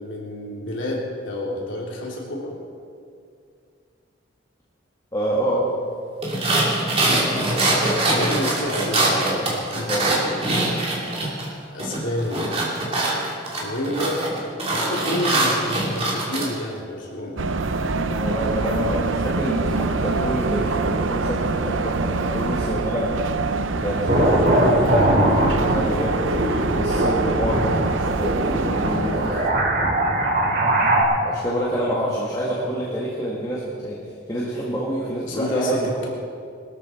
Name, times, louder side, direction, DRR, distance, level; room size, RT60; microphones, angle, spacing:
voice 1, 0.0-2.6 8.1-10.0 11.7-12.5 13.6-14.3 14.7-17.4 31.7-31.9 35.2-36.1, left 1 dB, 75° left, -3 dB, 3.2 m, -29 dB
voice 2, 5.1-5.7 9.9-10.3 10.6-10.7 18.0-23.2 23.8-26.3 26.8-29.6 31.2-34.0 34.3-35.9, right 1 dB, 20° left, -6 dB, 1.9 m, -27 dB
sound 1, 6.2-11.5 11.8-16.5, right 2 dB, 30° right, 2.9 m, -23 dB
sound 2, 17.4-29.5, right 3 dB, 80° right, 0.7 m, -25 dB
sound 3, 24.1-31.0, right 1 dB, 50° right, 2.5 m, -21 dB
21.0 x 13.5 x 4.5 m, 2.3 s
head